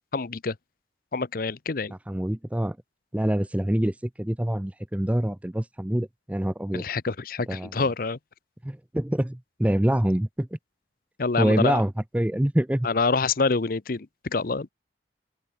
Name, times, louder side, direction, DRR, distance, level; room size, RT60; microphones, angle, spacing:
voice 1, 0.1-0.5 1.1-1.9 6.7-8.2 11.2-11.8 12.8-14.1 14.3-14.7, left 4 dB, 50° left, 0.7 m, -26 dB
voice 2, 2.1-2.8 3.1-6.8 7.5-7.7 8.6-10.5 11.4-12.9, right 1 dB, 10° right, 0.4 m, -25 dB
head